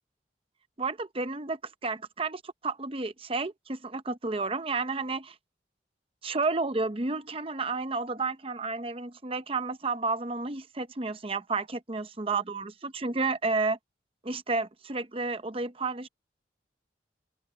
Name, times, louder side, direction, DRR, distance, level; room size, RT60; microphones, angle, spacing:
voice 1, 0.8-5.3 6.2-13.8 14.2-16.1, right 3 dB, 30° right, 0.8 m, -31 dB
head